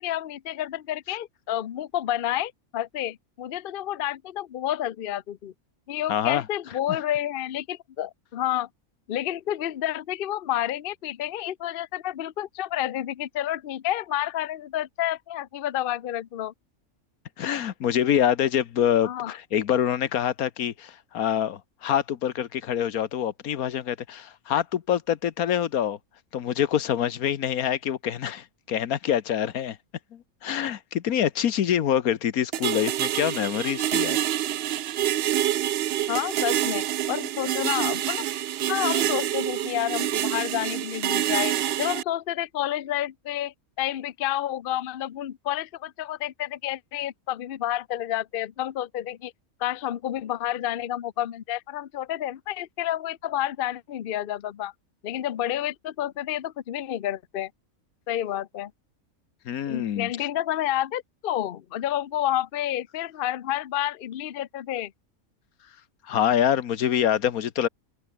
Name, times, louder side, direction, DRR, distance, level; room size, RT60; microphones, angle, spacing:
voice 1, 0.0-5.5 5.9-8.7 9.1-16.5 19.0-19.3 36.1-38.3 38.7-49.3 49.6-54.7 55.0-57.5 58.1-58.7 59.7-64.9, left 12 dB, 50° left, 0.7 m, -30 dB
voice 2, 6.1-6.4 6.9-7.0 17.4-26.0 26.3-29.8 30.1-34.2 59.5-60.1 66.1-67.7, left 10 dB, 80° left, 1.4 m, -25 dB
sound 1, 32.5-42.0, right 12 dB, 65° right, 0.6 m, -27 dB
omnidirectional pair, 1.5 m